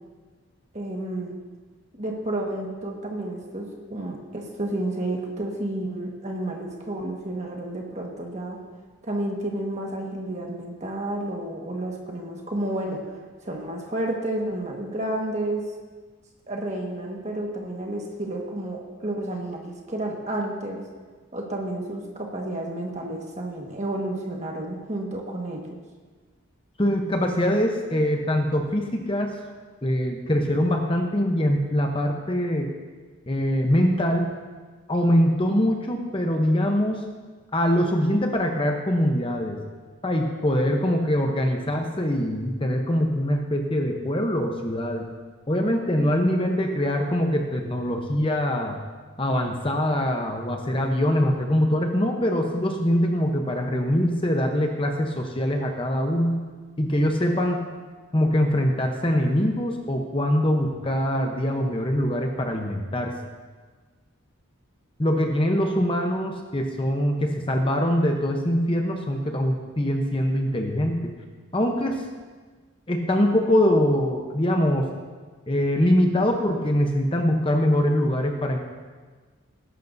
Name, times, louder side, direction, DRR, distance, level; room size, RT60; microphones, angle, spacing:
voice 1, 0.7-1.3 2.0-8.6 9.0-15.6 16.5-20.8 21.3-25.6, right 1 dB, 35° right, 0 dB, 1.5 m, -31 dB
voice 2, 26.8-29.3 29.8-32.7 33.3-34.3 34.9-37.0 37.5-39.6 40.0-45.1 45.5-48.8 49.2-56.4 56.8-57.7 58.1-63.1 65.0-71.1 71.5-72.0 72.9-74.9 75.5-78.6, equal, 25° left, 3 dB, 0.8 m, -23 dB
19.5 x 11.0 x 2.7 m, 1.4 s
head